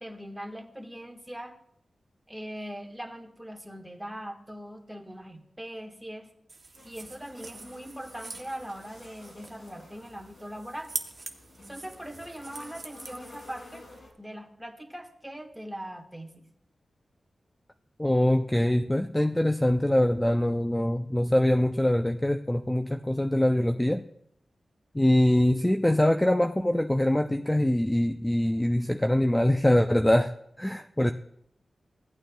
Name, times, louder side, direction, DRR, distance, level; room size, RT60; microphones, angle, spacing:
voice 1, 0.0-1.5 2.3-6.3 6.8-10.9 11.7-13.8 14.2-16.4, equal, 5° right, 3 dB, 1.4 m, -41 dB
sound 1, 6.5-14.0, right 3 dB, 55° right, 0.8 m, -44 dB
sound 2, 6.7-14.1, left 2 dB, 80° left, 2.8 m, -52 dB
voice 2, 18.0-24.0 24.9-31.1, left 1 dB, 10° left, 5 dB, 0.5 m, -23 dB
16.0 x 8.9 x 2.3 m, 0.72 s
cardioid pair, 60°, 0 cm